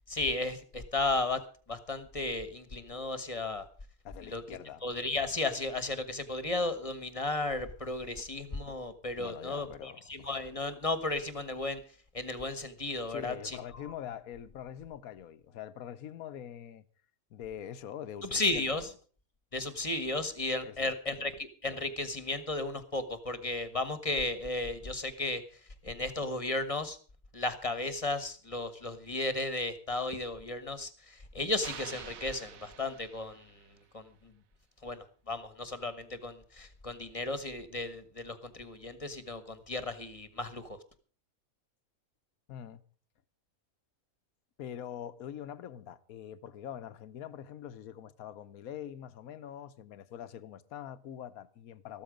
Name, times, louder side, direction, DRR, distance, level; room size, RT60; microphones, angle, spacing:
voice 1, 0.1-1.4 1.7-3.7 4.2-4.4 4.8-11.8 12.1-13.9 18.2-18.9 19.5-27.0 27.3-34.3 34.8-40.8, left 2 dB, 25° left, 1.3 m, -34 dB
voice 2, 4.0-4.8 8.2-8.3 9.2-10.3 13.1-16.8 17.3-18.6 20.6-21.3 42.5-42.8 44.6-52.0, left 10 dB, 80° left, 1.3 m, -44 dB
sound 1, 31.6-33.8, right 8 dB, 70° right, 1.3 m, -47 dB
14.0 x 13.0 x 5.1 m
omnidirectional pair, 1.5 m